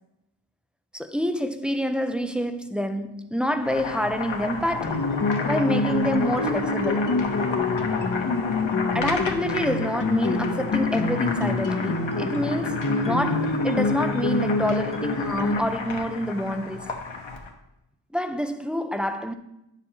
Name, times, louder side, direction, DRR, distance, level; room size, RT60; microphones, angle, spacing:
voice 1, 0.9-5.1 5.5-7.1 8.9-17.0 18.1-19.3, equal, ahead, 0.6 m, -27 dB
Boiling, 3.4-17.5, left 4 dB, 70° left, 1.3 m, -33 dB
sound 1, 4.8-15.6, left 3 dB, 40° left, 1.1 m, -26 dB
10.0 x 7.1 x 2.9 m
cardioid pair, 65°, 48 cm